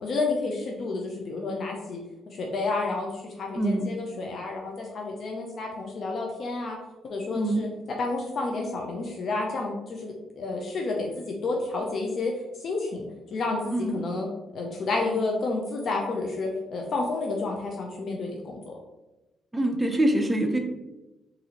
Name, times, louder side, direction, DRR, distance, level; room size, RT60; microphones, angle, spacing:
voice 1, 0.0-2.0 2.3-6.8 7.0-7.7 8.0-12.3 12.6-14.3 14.5-18.8, left 3 dB, 55° left, 0 dB, 0.5 m, -30 dB
voice 2, 3.6-3.9 7.3-7.6 13.7-14.0 19.5-20.6, right 1 dB, 10° right, 4 dB, 0.6 m, -24 dB
3.9 x 2.7 x 2.8 m, 1.0 s
cardioid pair, 90°, 0 cm